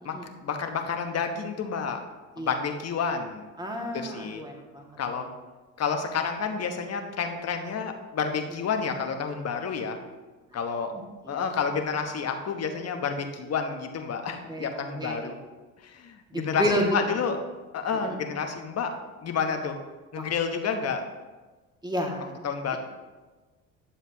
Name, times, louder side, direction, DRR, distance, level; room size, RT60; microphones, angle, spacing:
voice 1, 0.4-2.0 2.4-3.5 3.9-4.4 5.0-5.3 5.8-10.0 10.5-10.9 11.3-15.4 15.8-17.4 17.7-18.9 19.2-19.8 20.1-21.0 22.4-22.8, left 6 dB, 40° left, 5 dB, 1.1 m, -30 dB
voice 2, 3.6-5.2 10.5-10.6 11.2-11.5 14.5-15.3 16.3-16.9 18.0-18.2 20.2-20.3 21.8-22.4 22.7-22.8, equal, 10° right, 0 dB, 1.9 m, -31 dB
10.0 x 7.2 x 2.9 m, 1.2 s
hypercardioid pair, 65°, 39 cm